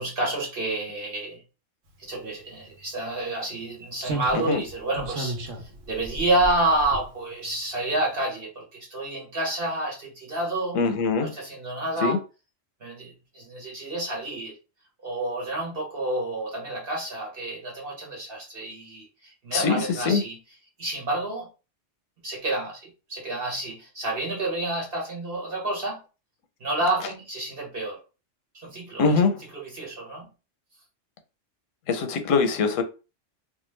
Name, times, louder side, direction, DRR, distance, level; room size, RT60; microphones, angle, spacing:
voice 1, 0.0-1.4 2.0-10.8 11.2-12.2 12.8-14.5 15.0-20.4 20.8-21.5 22.2-26.0 26.6-28.0 28.5-29.1 29.5-30.3, right 2 dB, 55° right, 1.0 m, -29 dB
Slam, 2.6-2.7 4.0-7.5 7.8-8.0, right 1 dB, 85° right, 1.1 m, -35 dB
voice 2, 10.8-11.3 12.0-12.2 19.5-20.2 29.0-29.3 31.9-32.8, left 4 dB, 85° left, 1.0 m, -22 dB
2.3 x 2.3 x 3.1 m
omnidirectional pair, 1.3 m